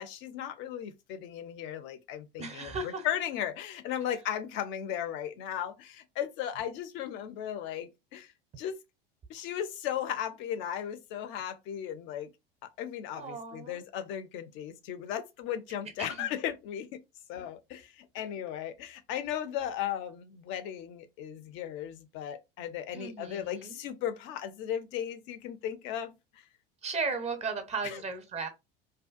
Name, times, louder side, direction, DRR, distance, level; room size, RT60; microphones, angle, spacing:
voice 1, 0.0-8.3 8.6-8.8 9.3-12.3 12.8-17.0 17.3-26.4 27.8-28.0, left 10 dB, 40° left, 0.5 m, -36 dB
voice 2, 2.4-3.1 13.2-13.8 16.0-16.3 22.9-23.8 26.8-28.5, right 4 dB, 20° right, 0.6 m, -36 dB
2.6 x 2.2 x 2.3 m
figure-of-eight pair, 75°, 29 cm